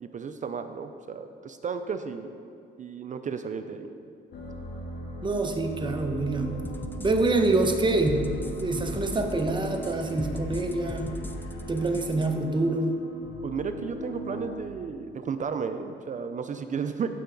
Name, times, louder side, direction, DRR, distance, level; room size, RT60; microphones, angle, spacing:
voice 1, 0.0-2.4 2.8-3.9 13.4-17.1, right 6 dB, 40° right, 9 dB, 0.5 m, -33 dB
sound 1, 4.3-14.6, equal, 60° left, 1.7 m, -38 dB
voice 2, 5.2-6.7 7.0-8.3 8.6-11.2 11.7-12.9, right 2 dB, 25° right, 4 dB, 1.0 m, -26 dB
sound 2, 6.6-12.3, left 2 dB, 10° left, 0.6 m, -39 dB
15.0 x 5.6 x 3.9 m, 2.4 s
cardioid pair, 90°, 20 cm